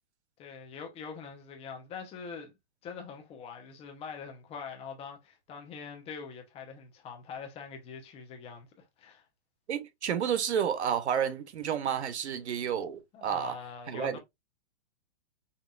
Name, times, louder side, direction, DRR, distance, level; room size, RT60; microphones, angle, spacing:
voice 1, 0.4-2.5 2.8-8.7 9.0-9.2 13.1-14.2, left 6 dB, 20° left, 1.0 m, -43 dB
voice 2, 9.7-13.6 13.9-14.2, right 8 dB, 85° right, 1.0 m, -30 dB
5.6 x 2.7 x 2.5 m
hypercardioid pair, 155°, 33 cm